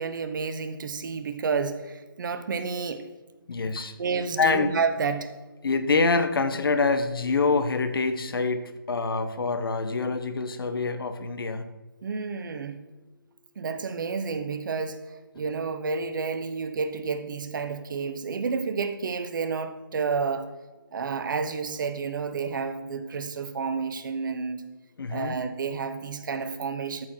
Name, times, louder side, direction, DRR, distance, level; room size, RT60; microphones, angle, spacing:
voice 1, 0.0-3.1 4.0-5.3 12.0-12.8 13.6-15.0 15.3-20.5 20.9-24.6 25.1-27.1, right 5 dB, 60° right, 10 dB, 1.0 m, -30 dB
voice 2, 3.5-4.0 4.4-4.8 5.6-11.7 25.0-25.4, left 4 dB, 75° left, 10 dB, 1.1 m, -26 dB
13.5 x 4.9 x 5.9 m, 1.1 s
hypercardioid pair, 150°, 12 cm